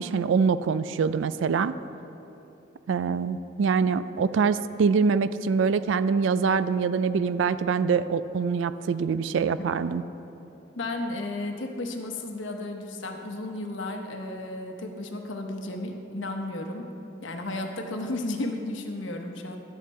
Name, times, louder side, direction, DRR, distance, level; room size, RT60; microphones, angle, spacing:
voice 1, 0.0-1.7 2.9-10.0, right 5 dB, 85° right, 14 dB, 0.3 m, -24 dB
voice 2, 10.8-16.9 17.2-19.6, left 2 dB, 85° left, 3 dB, 1.0 m, -33 dB
11.5 x 7.2 x 4.3 m, 2.9 s
head